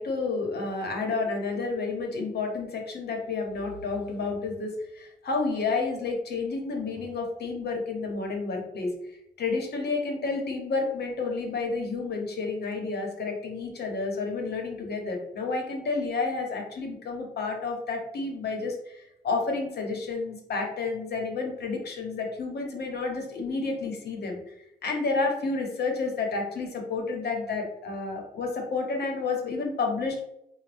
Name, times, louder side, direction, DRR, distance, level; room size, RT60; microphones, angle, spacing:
voice 1, 0.0-9.1 9.4-24.5 24.8-30.2, left 3 dB, 65° left, 2 dB, 1.1 m, -30 dB
4.9 x 2.3 x 3.4 m, 0.81 s
cardioid pair, 110°, 18 cm